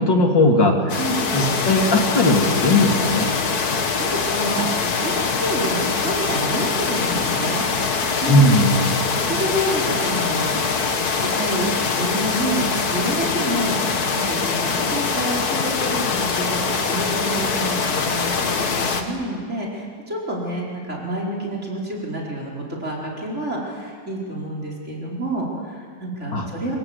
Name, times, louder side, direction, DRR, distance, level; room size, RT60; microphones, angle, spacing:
voice 1, 0.0-0.8 1.3-3.3 8.3-8.9 26.3-26.4, left 1 dB, 80° left, 2 dB, 3.4 m, -17 dB
sound 1, 0.9-19.0, left 4 dB, 55° left, 2.1 m, -23 dB
voice 2, 0.9-1.3 3.7-7.6 8.2-8.4 8.7-8.8 9.1-10.5 11.1-11.7 11.9-26.8, right 1 dB, 35° right, -2 dB, 5.3 m, -28 dB
25.5 x 24.0 x 8.2 m, 2.1 s
omnidirectional pair, 2.0 m